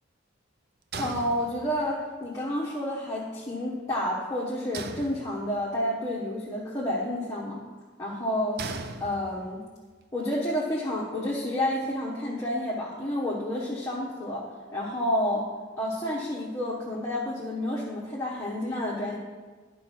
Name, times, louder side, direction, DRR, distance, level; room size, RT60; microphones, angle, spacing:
voice 1, 0.9-7.6 8.0-8.6 9.0-9.6 10.1-14.4 14.7-15.4 15.8-19.2, left 1 dB, 15° left, -5 dB, 1.0 m, -30 dB
sound 1, 0.9-2.0 4.7-5.8 8.6-9.7, right 4 dB, 50° right, 0.5 m, -39 dB
10.5 x 4.5 x 5.9 m, 1.4 s
head